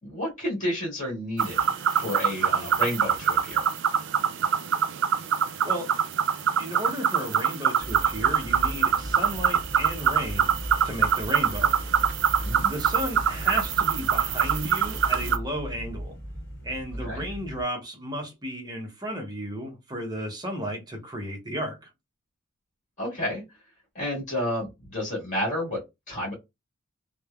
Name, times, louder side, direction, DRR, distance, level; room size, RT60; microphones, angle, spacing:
voice 1, 0.0-3.7 12.4-12.7 17.0-17.3 23.0-23.4 23.9-26.3, left 1 dB, 35° left, 1.5 m, -31 dB
sound 1, 1.4-15.4, right 8 dB, 55° right, 0.3 m, -24 dB
voice 2, 6.6-10.6 10.8-11.8 12.7-16.2 16.6-21.9, equal, 20° right, 0.6 m, -33 dB
sound 2, 7.8-17.6, equal, 5° left, 1.2 m, -37 dB
3.1 x 2.1 x 2.3 m
head